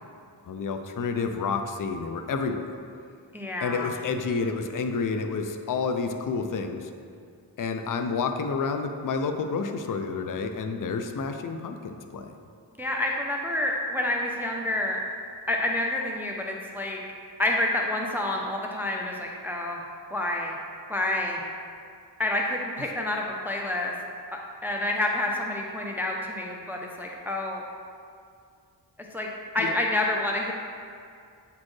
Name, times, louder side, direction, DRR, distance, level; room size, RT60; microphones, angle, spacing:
voice 1, 0.4-2.7 3.6-6.9 7.6-12.3 29.6-29.8, left 4 dB, 50° left, 6 dB, 0.5 m, -29 dB
voice 2, 3.3-3.9 12.8-15.0 15.5-17.0 17.4-19.8 20.1-20.5 20.9-21.4 22.2-23.9 24.6-27.6 29.1-29.3 29.5-30.5, left 1 dB, 5° right, 0 dB, 0.5 m, -28 dB
8.4 x 4.2 x 3.1 m, 2.3 s
wide cardioid pair, 45°, 44 cm